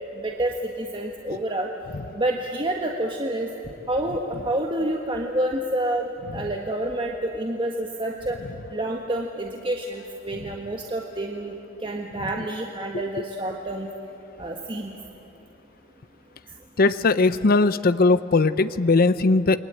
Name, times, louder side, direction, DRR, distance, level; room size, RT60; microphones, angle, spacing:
voice 1, 0.1-1.7 2.1-3.5 3.9-8.4 8.7-11.5 11.8-13.9 14.4-14.9, right 1 dB, 25° right, 1 dB, 1.6 m, -28 dB
voice 2, 16.8-19.6, left 3 dB, 50° left, 13 dB, 0.6 m, -19 dB
29.0 x 23.0 x 8.9 m, 2.9 s
head